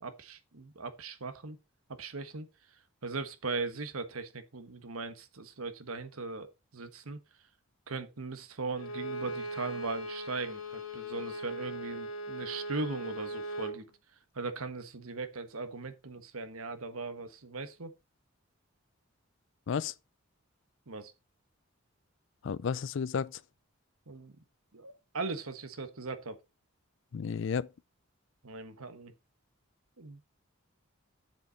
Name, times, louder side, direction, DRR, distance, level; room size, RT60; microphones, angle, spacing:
voice 1, 0.0-1.6 2.0-7.2 7.9-13.8 14.3-17.9 20.9-21.1 24.1-24.4 24.7-26.4 28.4-29.1 30.0-30.2, right 3 dB, 80° right, 1.3 m, -39 dB
Bowed string instrument, 8.8-13.8, right 1 dB, 85° left, 1.4 m, -39 dB
voice 2, 22.4-23.4 27.1-27.7, left 6 dB, 60° left, 0.4 m, -32 dB
7.6 x 7.3 x 4.0 m
head